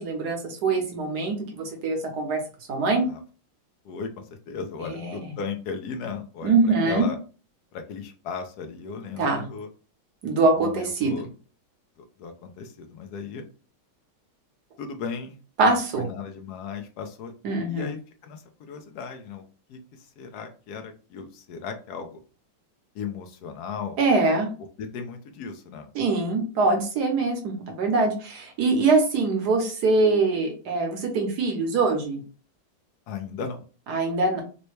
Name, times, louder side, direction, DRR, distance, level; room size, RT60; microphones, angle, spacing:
voice 1, 0.0-2.4 2.7-3.1 4.9-5.2 6.4-7.1 9.2-9.4 10.2-11.2 15.6-16.1 17.4-17.9 24.0-24.5 25.9-32.2 33.9-34.4, right 3 dB, 60° right, 3 dB, 1.2 m, -23 dB
voice 2, 3.8-7.2 7.7-9.7 10.6-11.3 12.0-13.4 14.8-15.4 15.6-17.3 17.7-19.4 19.7-22.2 22.9-24.0 24.8-25.9 33.1-33.6, left 5 dB, 75° left, 6 dB, 0.9 m, -36 dB
4.0 x 2.2 x 3.1 m, 0.36 s
omnidirectional pair, 2.3 m